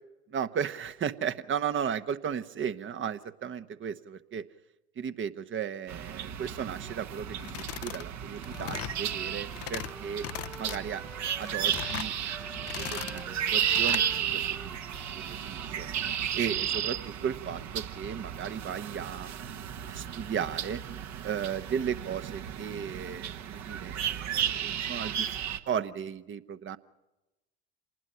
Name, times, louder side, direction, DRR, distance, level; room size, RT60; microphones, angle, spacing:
voice 1, 0.3-4.4 5.0-10.2 10.6-11.0 11.4-12.1 12.6-14.8 15.2-15.9 16.4-20.8 21.2-25.3 25.7-26.8, right 8 dB, 35° right, 12 dB, 1.1 m, -35 dB
sound 1, 5.9-25.6, right 9 dB, 55° right, 1.6 m, -34 dB
sound 2, 7.4-8.1 8.4-9.0 9.4-9.9 10.2-10.8 11.2-12.1 12.5-13.2 13.6-14.1, left 15 dB, 45° left, 0.7 m, -38 dB
Wind instrument woodwind instrument, 8.4-12.0 12.3-16.2, left 1 dB, ahead, 0.9 m, -49 dB
27.0 x 20.0 x 5.7 m, 1.0 s
hypercardioid pair, 65°, 34 cm